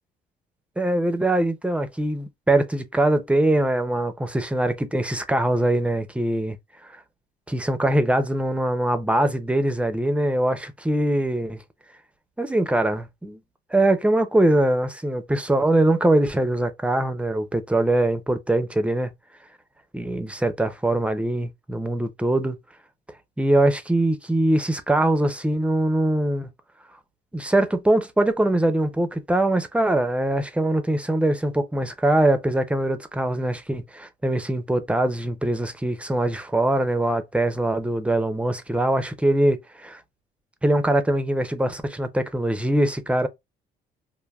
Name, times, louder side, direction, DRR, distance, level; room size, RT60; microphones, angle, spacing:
voice 1, 0.8-6.6 6.8-7.0 7.5-11.6 12.4-13.4 13.7-19.1 19.9-22.6 23.4-26.5 27.3-40.0 40.6-43.3, right 1 dB, 5° right, 0.5 m, -22 dB
3.3 x 2.1 x 2.2 m
cardioid pair, 110°, 17 cm